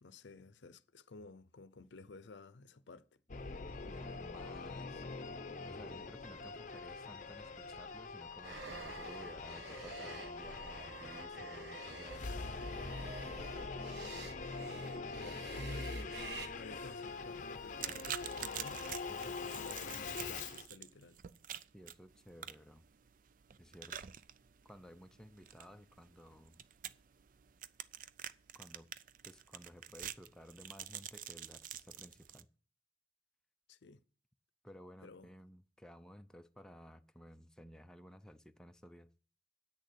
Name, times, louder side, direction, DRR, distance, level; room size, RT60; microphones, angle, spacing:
voice 1, 0.0-3.0 15.1-16.1 16.6-18.8 19.4-21.2 33.7-34.0 35.0-35.3, left 3 dB, 85° left, 0.6 m, -52 dB
Singing / Musical instrument, 3.3-20.7, left 4 dB, 45° left, 0.7 m, -44 dB
voice 2, 3.8-5.0 5.7-12.4 19.1-19.4 21.7-22.8 23.6-24.0 24.6-26.6 28.5-28.9 29.3-32.5 34.6-39.1, equal, 5° left, 0.5 m, -55 dB
sound 1, 8.4-16.5, right 2 dB, 75° right, 1.4 m, -48 dB
sound 2, 17.8-32.4, right 10 dB, 50° right, 0.4 m, -48 dB
8.7 x 6.5 x 8.4 m
head